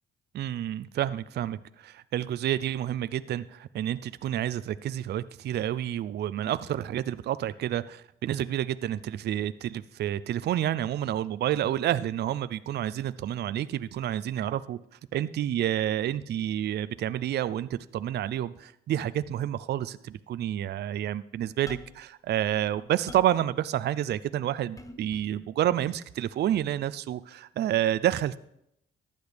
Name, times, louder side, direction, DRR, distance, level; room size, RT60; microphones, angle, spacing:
voice 1, 0.3-14.8 15.1-28.4, right 11 dB, 55° right, 15 dB, 0.4 m, -29 dB
sound 1, 21.7-22.1 22.6-23.4 24.8-25.3 26.5-26.7, left 2 dB, 15° left, 0.9 m, -46 dB
14.5 x 10.5 x 3.4 m, 0.78 s
cardioid pair, 90°, 20 cm